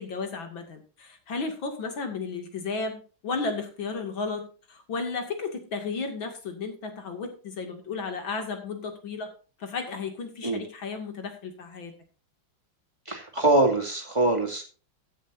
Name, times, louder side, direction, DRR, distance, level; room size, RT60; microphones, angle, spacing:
voice 1, 0.0-9.3 9.6-11.9, left 4 dB, 80° left, 5 dB, 3.2 m, -34 dB
voice 2, 13.1-14.6, right 2 dB, 15° right, 2 dB, 2.5 m, -23 dB
15.5 x 10.5 x 2.7 m, 0.36 s
omnidirectional pair, 2.1 m